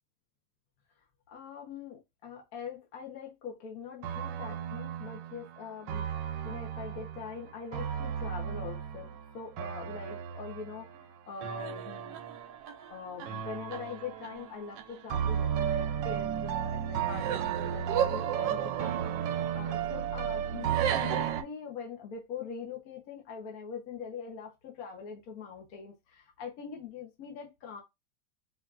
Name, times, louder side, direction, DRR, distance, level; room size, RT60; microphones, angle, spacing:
voice 1, 1.3-12.2 12.9-27.8, left 6 dB, 55° left, 1.2 m, -43 dB
sound 1, 4.0-21.4, right 9 dB, 80° right, 1.2 m, -33 dB
4.5 x 2.8 x 2.4 m
omnidirectional pair, 2.0 m